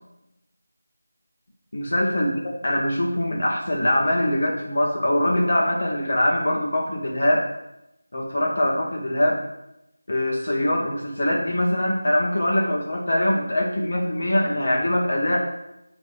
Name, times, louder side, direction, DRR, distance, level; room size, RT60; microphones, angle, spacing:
voice 1, 1.7-7.5 8.1-9.4 10.1-15.4, left 1 dB, 55° left, -1 dB, 1.0 m, -23 dB
6.7 x 3.2 x 5.0 m, 0.89 s
figure-of-eight pair, 170°, 0 cm